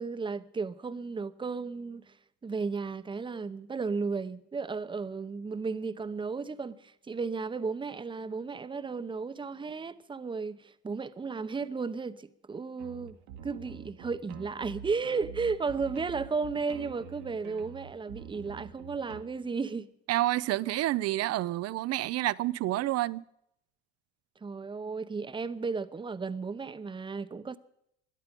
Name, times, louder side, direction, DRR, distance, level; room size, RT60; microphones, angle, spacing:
voice 1, 0.0-2.2 2.4-13.2 13.4-19.9 24.4-27.6, right 4 dB, 15° right, 0.8 m, -34 dB
sound 1, 12.8-19.2, right 8 dB, 85° right, 2.2 m, -46 dB
voice 2, 20.1-23.2, right 16 dB, 45° right, 0.6 m, -29 dB
21.5 x 12.5 x 5.3 m
supercardioid pair, 110°, 35 cm